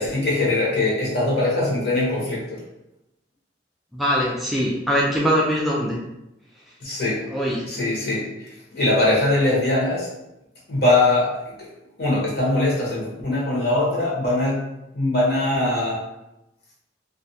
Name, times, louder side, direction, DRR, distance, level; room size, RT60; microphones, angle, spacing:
voice 1, 0.0-2.6 6.8-7.2 7.7-8.3 8.7-10.1 10.7-11.7 12.0-14.7 14.9-16.0, left 2 dB, 60° left, -5 dB, 0.9 m, -21 dB
voice 2, 3.9-6.0 7.3-7.7, equal, ahead, -5 dB, 0.3 m, -22 dB
2.5 x 2.2 x 2.7 m, 0.90 s
head